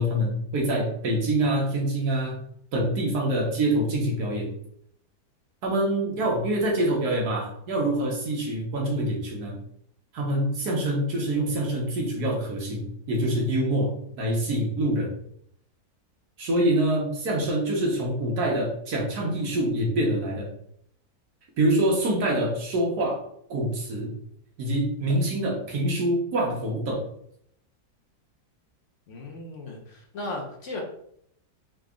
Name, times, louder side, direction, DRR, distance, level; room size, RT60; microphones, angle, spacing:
voice 1, 0.0-2.4 2.7-4.5 5.6-9.6 10.1-15.1 16.4-20.5 21.6-23.2 23.5-24.1 24.6-27.1, right 1 dB, 70° right, -2 dB, 1.6 m, -25 dB
voice 2, 29.1-30.8, left 2 dB, 60° left, 0 dB, 0.9 m, -36 dB
3.9 x 2.3 x 3.7 m, 0.69 s
omnidirectional pair, 1.8 m